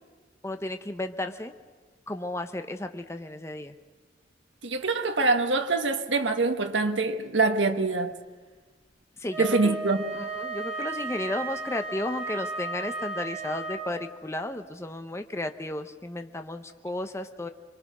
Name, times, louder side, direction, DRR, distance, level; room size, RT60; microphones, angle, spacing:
voice 1, 0.4-1.5 2.1-3.7 9.2-9.8 10.1-17.5, left 1 dB, 15° left, 0.8 m, -33 dB
voice 2, 4.6-8.1 9.4-10.0, right 3 dB, 75° right, 1.5 m, -24 dB
Wind instrument woodwind instrument, 9.3-14.2, right 3 dB, 30° right, 7.5 m, -35 dB
26.0 x 23.5 x 6.1 m
head